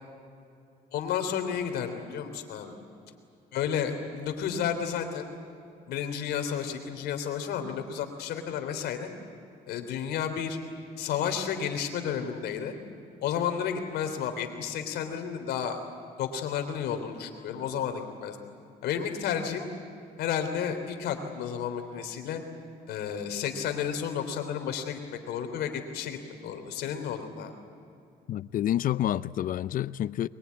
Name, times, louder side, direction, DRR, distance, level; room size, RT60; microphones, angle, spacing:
voice 1, 0.9-2.7 3.5-5.2 5.9-9.1 9.7-10.6 11.0-12.7 13.2-15.8 16.2-18.4 18.8-19.7 20.2-22.4 22.9-27.5, left 8 dB, 75° left, 3.3 m, -32 dB
voice 2, 28.3-30.3, left 12 dB, 55° left, 0.5 m, -28 dB
22.5 x 22.5 x 9.6 m
cardioid pair, 110°, 17 cm